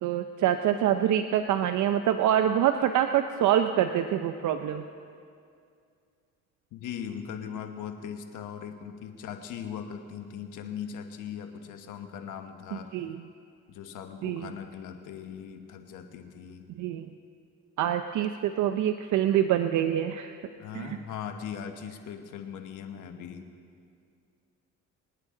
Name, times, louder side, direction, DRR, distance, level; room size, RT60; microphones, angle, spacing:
voice 1, 0.0-4.8 12.7-13.3 14.2-14.5 16.7-17.1 17.8-20.3 20.7-21.0, right 10 dB, 75° right, 7 dB, 0.6 m, -26 dB
voice 2, 6.7-12.9 13.7-16.6 20.6-23.4, left 8 dB, 90° left, 6 dB, 1.2 m, -39 dB
24.5 x 9.8 x 3.8 m, 2.4 s
cardioid pair, 90°, 30 cm